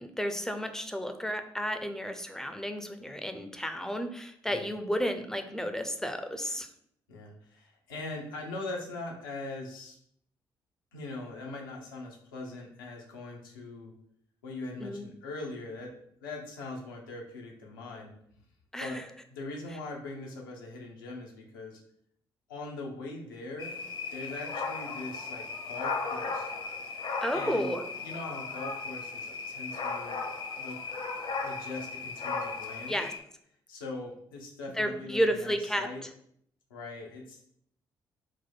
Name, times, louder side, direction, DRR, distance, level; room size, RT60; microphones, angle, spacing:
voice 1, 0.0-6.7 14.8-15.1 18.7-19.0 27.2-27.8 32.9-33.1 34.7-36.1, equal, 5° left, 7 dB, 0.6 m, -32 dB
voice 2, 7.1-10.0 10.9-13.9 14.4-15.9 16.2-18.1 18.8-19.0 19.3-21.8 22.5-23.8 24.1-26.5 27.3-30.2 30.6-30.8 31.4-33.0 33.7-36.0 36.7-37.5, left 2 dB, 80° left, -1 dB, 0.8 m, -41 dB
sound 1, 23.6-33.2, left 4 dB, 50° left, 0.8 m, -36 dB
4.3 x 2.2 x 4.4 m, 0.69 s
figure-of-eight pair, 45°, 11 cm